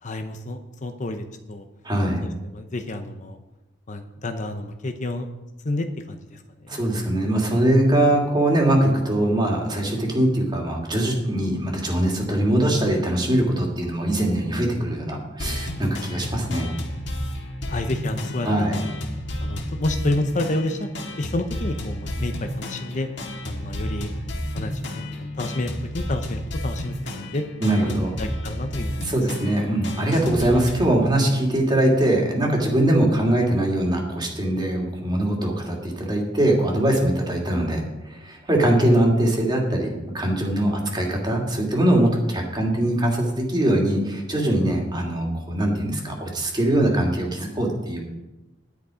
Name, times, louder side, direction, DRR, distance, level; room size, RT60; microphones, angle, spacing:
voice 1, 0.0-1.6 2.2-3.4 3.9-5.3 5.6-6.8 17.7-18.8 19.4-20.9 21.2-23.1 23.5-24.1 24.5-27.4 27.8-29.2, left 2 dB, 40° left, 7 dB, 0.8 m, -30 dB
voice 2, 1.8-2.2 6.7-16.7 18.4-18.8 27.6-28.2 29.0-48.0, right 1 dB, 25° right, 0 dB, 2.4 m, -22 dB
sound 1, 15.4-31.0, left 1 dB, 65° left, 1.9 m, -31 dB
11.0 x 10.5 x 5.0 m, 1.0 s
head